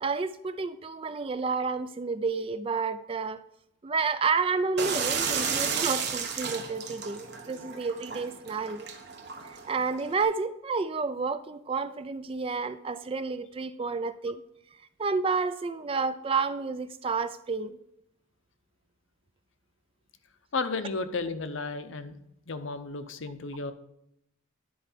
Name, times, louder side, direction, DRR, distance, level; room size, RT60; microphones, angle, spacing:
voice 1, 0.0-3.4 3.8-8.9 9.4-14.4 15.0-17.8, right 4 dB, 25° right, 12 dB, 0.3 m, -30 dB
sound 1, 4.8-10.2, right 6 dB, 50° right, 1.0 m, -33 dB
voice 2, 20.5-22.2 22.5-23.7, left 3 dB, 60° left, 10 dB, 0.7 m, -33 dB
10.5 x 4.6 x 5.6 m, 0.78 s
head